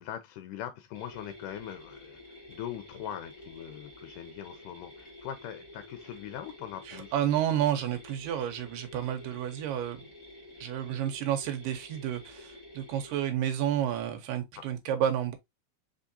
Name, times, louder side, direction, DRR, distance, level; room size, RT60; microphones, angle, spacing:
voice 1, 0.0-7.1, left 10 dB, 85° left, 2.2 m, -41 dB
sound 1, 0.9-13.2, left 2 dB, 20° left, 1.1 m, -50 dB
voice 2, 6.9-10.0 10.6-15.4, right 10 dB, 90° right, 2.5 m, -30 dB
5.0 x 3.6 x 2.7 m
omnidirectional pair, 3.7 m